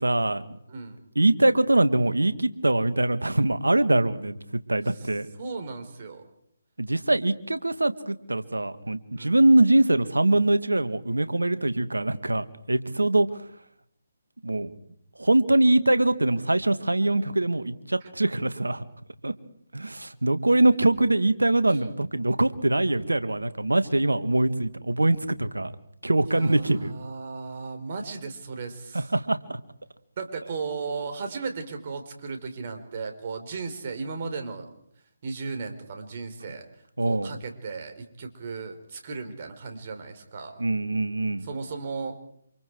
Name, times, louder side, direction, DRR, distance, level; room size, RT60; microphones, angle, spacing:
voice 1, 0.0-0.6 1.2-4.4 4.7-5.3 6.8-13.3 14.4-14.7 15.2-18.8 19.2-19.3 19.7-25.7 26.0-26.9 28.9-29.6 37.0-37.3 40.6-41.5, right 2 dB, 85° right, 11 dB, 1.9 m, -23 dB
voice 2, 5.4-6.3 9.1-9.4 26.3-29.1 30.2-34.7 35.2-36.7 37.0-40.6 41.4-42.2, right 4 dB, 45° right, 6 dB, 4.2 m, -35 dB
28.0 x 26.5 x 4.7 m, 0.69 s
figure-of-eight pair, 145°, 0 cm